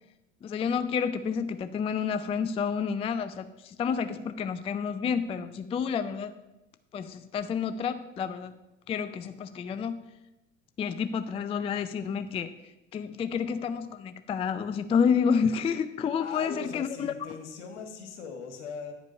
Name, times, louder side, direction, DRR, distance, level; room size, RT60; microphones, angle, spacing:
voice 1, 0.4-6.3 6.9-8.6 8.9-10.1 10.8-12.5 12.9-17.1, left 6 dB, 15° left, 11 dB, 0.4 m, -29 dB
voice 2, 16.2-18.9, left 5 dB, 70° left, 4 dB, 1.5 m, -40 dB
9.7 x 5.2 x 5.3 m, 0.98 s
figure-of-eight pair, 70°, 36 cm